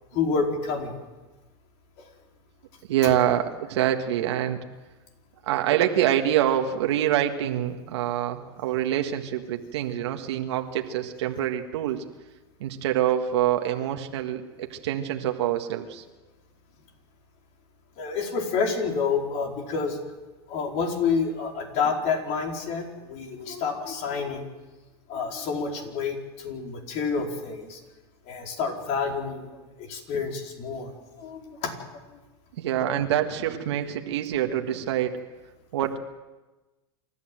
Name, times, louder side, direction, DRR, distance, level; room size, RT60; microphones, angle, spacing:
voice 1, 0.1-1.0 2.0-2.1 3.0-3.1 18.0-20.0 20.5-24.5 25.1-27.8 28.3-29.5 29.8-30.9 31.2-31.7 32.8-33.0, left 5 dB, 50° left, 2 dB, 4.8 m, -28 dB
voice 2, 2.9-4.7 5.5-12.0 12.6-16.0 32.6-35.2 35.7-36.0, right 11 dB, 80° right, 4 dB, 1.7 m, -26 dB
28.0 x 13.5 x 7.7 m, 1.1 s
hypercardioid pair, 115°, 14 cm